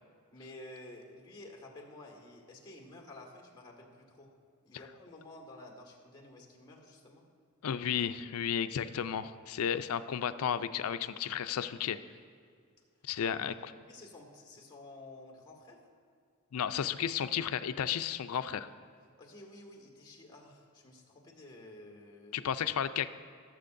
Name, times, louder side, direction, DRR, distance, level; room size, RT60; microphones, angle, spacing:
voice 1, 0.3-4.3 4.6-7.2 13.2-15.8 19.2-22.5, left 2 dB, 20° left, 0 dB, 1.7 m, -52 dB
voice 2, 7.6-12.0 13.0-13.7 16.5-18.7 22.3-23.1, left 8 dB, 85° left, 12 dB, 0.4 m, -33 dB
18.5 x 7.6 x 2.6 m, 2.2 s
head